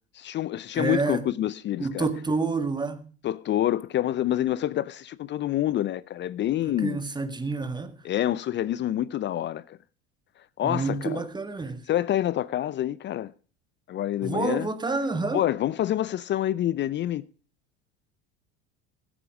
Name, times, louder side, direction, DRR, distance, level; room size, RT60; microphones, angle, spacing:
voice 1, 0.1-2.1 3.2-7.0 8.0-9.8 10.6-11.2 11.9-13.3 13.9-14.7 15.3-17.2, left 12 dB, 35° left, 0.5 m, -27 dB
voice 2, 0.7-1.2 1.8-3.1 6.7-7.9 10.6-11.8 14.2-15.4, right 3 dB, 15° right, 1.6 m, -28 dB
15.5 x 8.7 x 4.8 m
hypercardioid pair, 95°, 33 cm